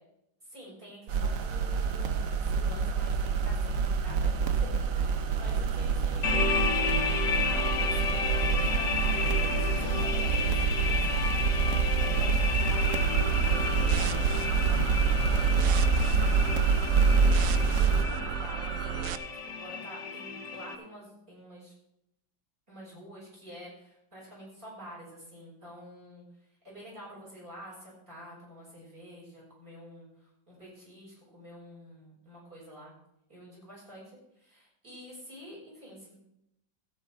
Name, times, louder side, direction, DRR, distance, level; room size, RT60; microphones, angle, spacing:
voice 1, 0.4-19.0 19.5-21.7 22.7-26.2 26.6-32.9 33.3-36.2, equal, 30° right, -4 dB, 6.0 m, -48 dB
sound 1, 1.1-18.0, right 5 dB, 55° right, 1.0 m, -26 dB
sound 2, 6.2-20.8, left 5 dB, 70° left, 1.6 m, -32 dB
sound 3, 12.7-19.2, right 9 dB, 85° right, 0.7 m, -35 dB
14.0 x 8.3 x 4.5 m, 0.80 s
omnidirectional pair, 2.0 m